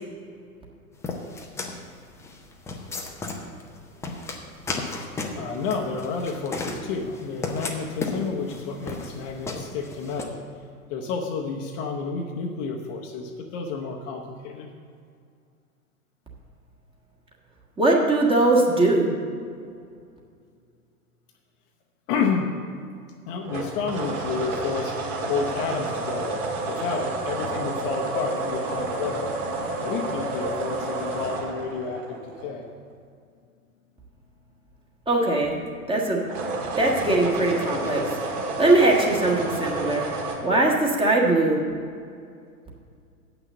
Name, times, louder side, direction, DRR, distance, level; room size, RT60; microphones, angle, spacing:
sound 1, 1.0-10.2, left 3 dB, 5° left, 0.6 m, -34 dB
voice 1, 5.3-10.4 10.9-14.7 22.1-22.5 23.3-25.0 25.2-26.4 26.7-29.3 29.8-32.7, left 5 dB, 35° left, 1 dB, 0.9 m, -30 dB
voice 2, 17.8-19.1 35.1-35.6 35.9-36.2 36.8-38.0 38.6-40.1 40.4-41.6, right 2 dB, 10° right, -2 dB, 1.4 m, -20 dB
sound 2, 23.4-32.7 36.2-40.4, right 2 dB, 35° right, 1.7 m, -30 dB
7.9 x 6.0 x 7.8 m, 2.3 s
figure-of-eight pair, 105°, 45 cm